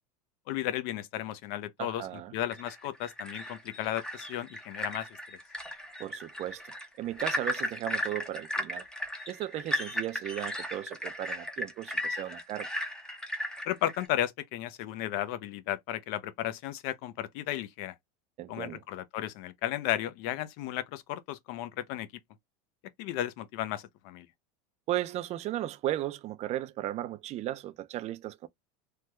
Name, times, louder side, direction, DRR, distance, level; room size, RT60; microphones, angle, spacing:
voice 1, 0.5-2.1 2.3-5.1 13.6-17.9 18.5-22.1 23.0-24.3, left 13 dB, 60° left, 0.7 m, -34 dB
voice 2, 1.8-2.3 6.0-8.9 9.3-12.7 18.4-18.8 24.9-28.5, right 13 dB, 35° right, 0.5 m, -36 dB
sound 1, 2.5-14.1, equal, 5° left, 0.6 m, -36 dB
3.3 x 2.2 x 2.9 m
supercardioid pair, 130°, 19 cm